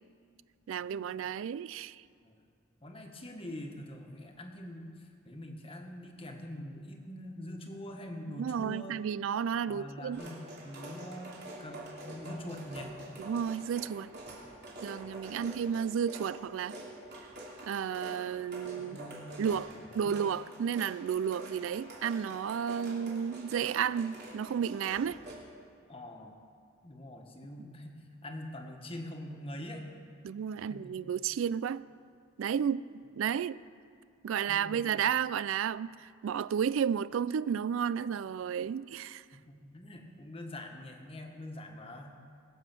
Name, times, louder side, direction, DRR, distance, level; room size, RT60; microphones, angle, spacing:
voice 1, 0.7-2.0 8.4-10.2 13.2-14.1 14.8-16.8 17.7-19.0 19.4-25.2 30.2-31.8 32.4-33.6 34.2-39.2, right 8 dB, 75° right, 0.3 m, -32 dB
voice 2, 2.8-9.1 9.7-11.3 11.6-12.9 18.8-19.3 19.7-20.2 25.9-26.4 26.8-29.9 30.6-30.8 34.5-34.8 39.5-42.2, left 1 dB, 30° left, 1.4 m, -44 dB
sound 1, 10.1-25.4, right 1 dB, 55° right, 3.1 m, -47 dB
20.5 x 7.9 x 6.1 m
head